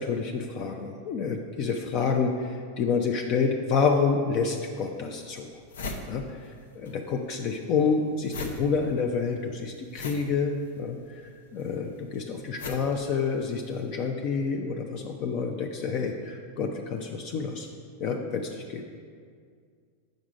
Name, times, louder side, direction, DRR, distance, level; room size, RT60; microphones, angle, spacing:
voice 1, 0.0-5.5 6.1-17.7 18.0-18.8, left 5 dB, 45° left, 3 dB, 0.5 m, -28 dB
sound 1, 4.5-4.6 5.1-5.2 5.4-7.0 7.2-13.8, left 3 dB, 85° left, 0.7 m, -40 dB
6.1 x 5.2 x 5.1 m, 2.1 s
hypercardioid pair, 125°, 0 cm